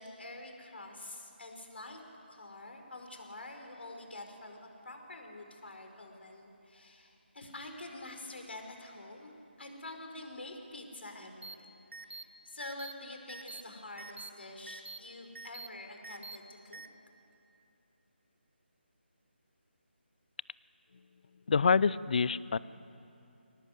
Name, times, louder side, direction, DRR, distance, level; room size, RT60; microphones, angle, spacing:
voice 1, 0.0-2.0 2.3-9.3 9.6-11.7 12.0-16.8, left 2 dB, 65° left, 4 dB, 4.8 m, -47 dB
sound 1, 11.4-11.5 11.9-12.2 12.6-12.9 13.3-13.6 14.0-14.3 14.7-15.0 15.3-15.7 16.0-16.4 16.7-16.9, right 3 dB, 80° right, 1.1 m, -45 dB
voice 2, 21.5-22.6, left 5 dB, 45° left, 20 dB, 0.5 m, -26 dB
22.5 x 18.5 x 8.0 m, 2.7 s
figure-of-eight pair, 155°, 6 cm